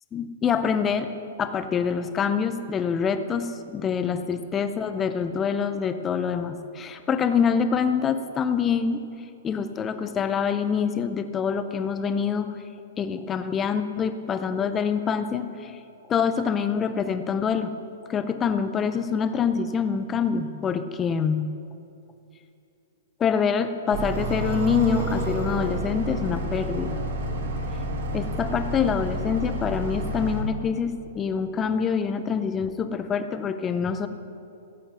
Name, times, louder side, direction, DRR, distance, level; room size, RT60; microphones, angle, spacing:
voice 1, 0.1-1.1 1.4-9.1 9.4-12.5 13.0-15.7 16.1-17.7 18.1-21.4 23.2-27.0 28.1-34.1, left 6 dB, 15° left, 10 dB, 0.5 m, -25 dB
sound 1, 23.9-30.4, right 1 dB, 55° right, 1.5 m, -29 dB
14.5 x 7.8 x 6.1 m, 2.6 s
hypercardioid pair, 170°, 0 cm